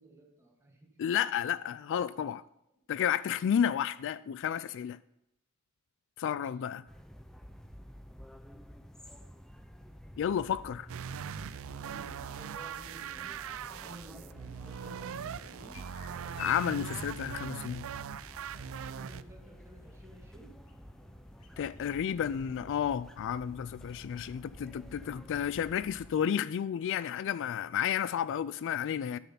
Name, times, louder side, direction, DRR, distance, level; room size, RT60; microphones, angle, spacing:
voice 1, 0.0-0.9 6.4-6.8 10.3-10.8 11.6-15.8 18.9-20.6 29.1-29.2, right 2 dB, 15° right, 2.4 m, -54 dB
voice 2, 1.0-2.4 2.9-5.0 6.2-6.8 10.2-10.9 16.4-17.9 21.6-29.2, left 9 dB, 55° left, 0.3 m, -31 dB
sound 1, 6.9-26.1, equal, ahead, 0.6 m, -51 dB
sound 2, 10.9-19.2, right 7 dB, 65° right, 0.4 m, -41 dB
sound 3, 14.5-22.9, left 4 dB, 80° left, 1.4 m, -54 dB
11.0 x 6.7 x 5.6 m
head